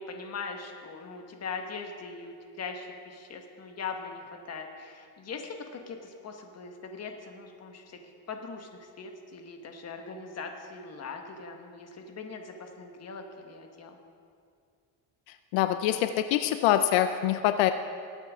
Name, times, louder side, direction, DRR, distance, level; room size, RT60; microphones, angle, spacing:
voice 1, 0.0-8.0 8.3-14.0, left 4 dB, 35° left, 4 dB, 1.5 m, -41 dB
voice 2, 15.5-17.7, left 12 dB, 85° left, 9 dB, 0.6 m, -24 dB
20.0 x 9.0 x 3.7 m, 2.3 s
cardioid pair, 130°, 44 cm